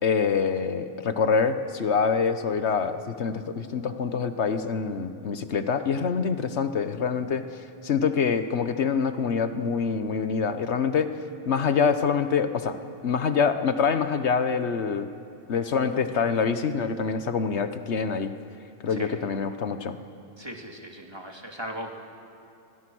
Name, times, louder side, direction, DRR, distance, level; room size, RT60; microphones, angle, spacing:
voice 1, 0.0-7.4 7.8-11.1 11.5-12.8 13.0-15.1 15.5-18.3 18.8-20.0, left 6 dB, 70° left, 10 dB, 1.4 m, -25 dB
voice 2, 20.4-21.9, equal, 20° right, 1 dB, 2.5 m, -38 dB
29.5 x 22.0 x 6.3 m, 2.7 s
omnidirectional pair, 1.2 m